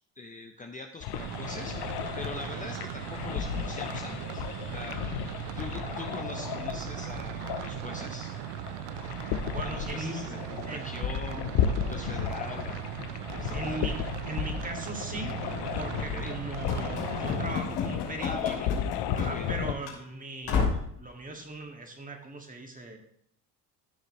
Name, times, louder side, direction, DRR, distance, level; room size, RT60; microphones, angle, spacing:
voice 1, 0.2-1.8 2.2-4.5 4.7-5.0 5.6-8.3 9.6-12.8 13.4-13.9 16.0-16.3 18.2-18.7 19.2-19.5, left 3 dB, 20° left, 4 dB, 0.8 m, -42 dB
sound 1, 1.0-19.7, left 8 dB, 65° left, 0.9 m, -34 dB
sound 2, 1.2-17.6, right 13 dB, 80° right, 0.6 m, -38 dB
voice 2, 9.5-10.2 10.7-10.9 11.3-11.4 13.5-15.4 15.7-18.6 19.1-23.0, right 2 dB, 20° right, 4 dB, 2.0 m, -39 dB
Run / Slam, 16.7-19.6 19.8-20.0 20.4-20.9, left 5 dB, 90° left, 3.4 m, -32 dB
14.0 x 6.5 x 3.2 m, 0.68 s
supercardioid pair, 95°, 43 cm